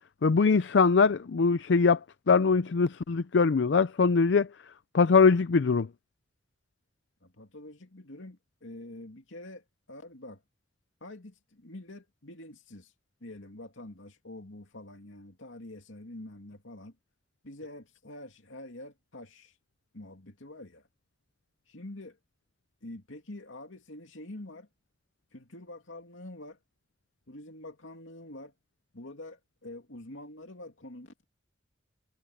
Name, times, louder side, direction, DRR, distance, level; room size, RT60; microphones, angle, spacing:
voice 1, 0.2-2.0 2.3-4.5 4.9-5.9, left 4 dB, 65° left, 0.5 m, -22 dB
voice 2, 7.2-10.4 11.0-12.9 13.2-17.0 17.4-19.5 19.9-20.9 21.7-22.2 22.8-24.7 25.3-26.6 27.3-28.5 28.9-31.2, left 1 dB, 85° left, 2.7 m, -46 dB
head